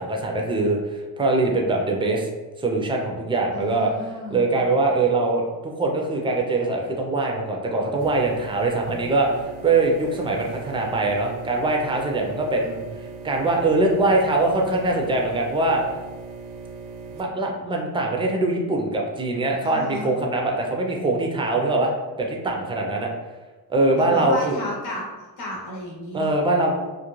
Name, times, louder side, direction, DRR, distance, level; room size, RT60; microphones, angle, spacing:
voice 1, 0.0-2.3 2.6-15.8 17.1-21.9 22.2-23.1 23.7-24.6 26.1-26.7, right 2 dB, 15° right, 1 dB, 0.3 m, -23 dB
voice 2, 3.5-4.5 19.6-20.1 23.9-25.0 25.4-26.3, left 2 dB, 75° left, -5 dB, 0.9 m, -33 dB
sound 1, 8.0-17.2, right 4 dB, 75° right, 0.5 m, -39 dB
2.4 x 2.2 x 3.0 m, 1.2 s
cardioid pair, 100°, 39 cm